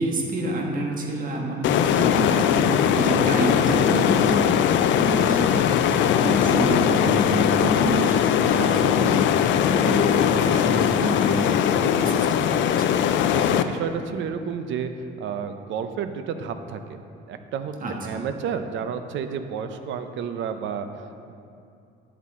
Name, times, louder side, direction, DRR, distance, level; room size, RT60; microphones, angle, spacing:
voice 1, 0.0-13.1 17.8-18.2, right 1 dB, 45° right, 0 dB, 1.5 m, -28 dB
sound 1, 1.6-13.6, left 9 dB, 70° left, 0.4 m, -20 dB
voice 2, 13.3-17.0 17.3-17.7 18.0-21.3, right 7 dB, 70° right, 9 dB, 0.7 m, -31 dB
10.5 x 8.2 x 3.7 m, 2.5 s
cardioid pair, 145°, 20 cm